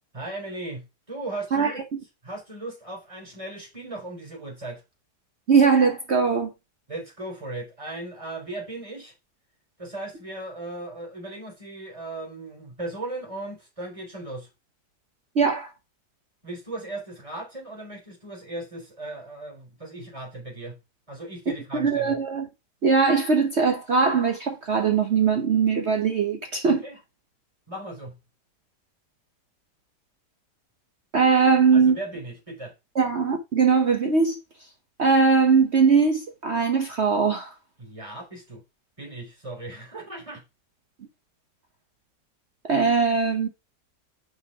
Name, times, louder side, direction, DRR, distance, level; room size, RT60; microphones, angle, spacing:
voice 1, 0.1-1.8 2.2-4.8 6.9-9.1 9.8-14.5 16.4-20.8 21.1-22.2 26.6-27.0 27.7-28.2 31.7-32.7 37.8-38.6 39.0-40.4, right 2 dB, 20° right, 4.2 m, -37 dB
voice 2, 5.5-6.5 15.4-15.7 21.7-22.5 22.8-26.8 31.1-32.0 33.0-34.4 35.0-37.5 42.7-43.5, right 5 dB, 45° right, 1.1 m, -20 dB
5.7 x 5.7 x 4.7 m
omnidirectional pair, 1.8 m